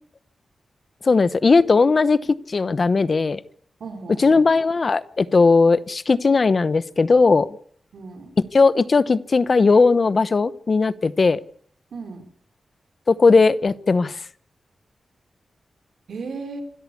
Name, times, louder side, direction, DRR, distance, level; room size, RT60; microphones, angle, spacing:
voice 1, 1.0-3.4 4.2-7.5 8.5-11.4 13.1-14.2, left 4 dB, 40° left, 17 dB, 0.8 m, -17 dB
voice 2, 3.8-4.5 7.9-8.3 11.9-12.2 16.1-16.6, right 4 dB, 80° right, 6 dB, 4.2 m, -35 dB
26.5 x 13.0 x 8.3 m, 0.62 s
wide cardioid pair, 130°, 0 cm